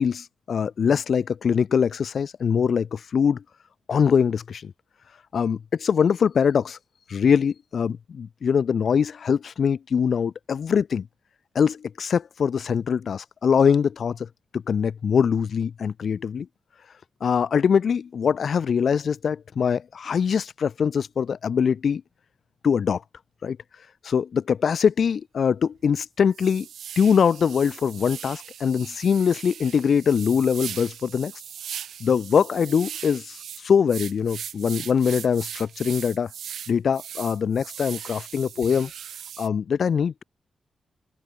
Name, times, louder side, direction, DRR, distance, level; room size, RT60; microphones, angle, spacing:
voice 1, 0.0-3.4 3.9-4.7 5.3-6.8 7.1-11.1 11.5-14.3 14.5-16.5 17.2-22.0 22.6-23.0 23.4-23.6 24.0-26.7 26.9-31.3 32.0-36.3 36.7-38.9 39.4-40.2, left 7 dB, 65° left, 5.0 m, -23 dB
sound 1, 25.1-25.2 25.7-25.8 26.3-39.5, right 9 dB, 85° right, 2.9 m, -39 dB
cardioid pair, 70°, 0 cm